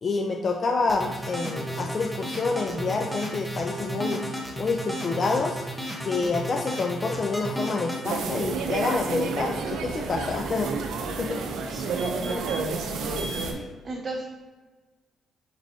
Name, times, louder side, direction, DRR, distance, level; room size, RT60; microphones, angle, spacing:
voice 1, 0.0-4.3 4.6-5.6 6.1-10.7 11.2-11.4, left 4 dB, 45° left, 2 dB, 0.4 m, -28 dB
sound 1, 0.9-8.0, equal, 5° left, 0.9 m, -33 dB
sound 2, 8.0-13.5, right 4 dB, 80° right, 0.5 m, -30 dB
voice 2, 11.7-13.1 13.5-14.2, right 2 dB, 35° right, -1 dB, 0.7 m, -36 dB
4.5 x 4.0 x 2.7 m, 1.3 s
cardioid pair, 90°, 0 cm